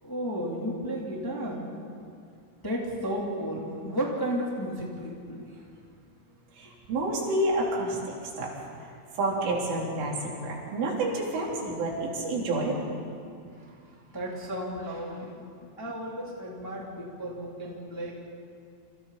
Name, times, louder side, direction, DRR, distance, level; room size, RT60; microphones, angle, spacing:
voice 1, 0.0-1.7 2.6-5.5 13.4-13.8 14.0-18.1, equal, 5° left, -4 dB, 2.3 m, -33 dB
voice 2, 6.5-8.5 8.8-12.8, right 2 dB, 85° right, -3 dB, 6.3 m, -29 dB
29.5 x 27.0 x 4.3 m, 2.3 s
omnidirectional pair, 5.5 m